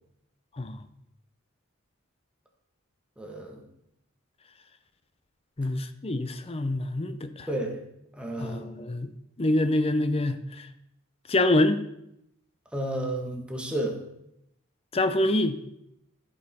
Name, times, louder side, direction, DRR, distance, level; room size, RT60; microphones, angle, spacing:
voice 1, 3.2-3.6 7.5-7.8 8.1-8.8 12.7-14.0, right 1 dB, 5° right, 1 dB, 1.2 m, -32 dB
voice 2, 5.6-7.5 8.4-9.1 9.4-10.7 11.3-11.8 14.9-15.6, left 1 dB, 30° left, 11 dB, 0.6 m, -26 dB
14.5 x 5.5 x 4.2 m, 0.80 s
head